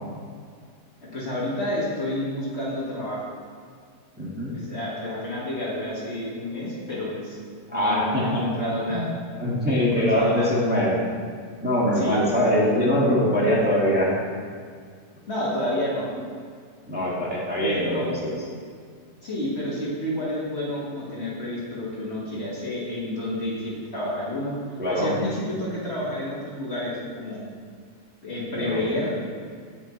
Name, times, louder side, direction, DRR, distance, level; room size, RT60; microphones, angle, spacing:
voice 1, 1.1-3.3 4.5-7.4 7.7-9.1 9.8-10.6 12.0-12.2 15.3-16.1 17.6-18.1 19.2-24.5 24.9-27.4 28.2-29.3, left 1 dB, 40° left, -7 dB, 2.1 m, -29 dB
voice 2, 4.2-4.5 7.7-8.4 8.9-11.0 11.6-14.1 16.9-18.3 24.8-25.1 28.6-28.8, equal, 5° right, -7 dB, 1.7 m, -23 dB
15.5 x 5.5 x 3.2 m, 2.1 s
omnidirectional pair, 1.8 m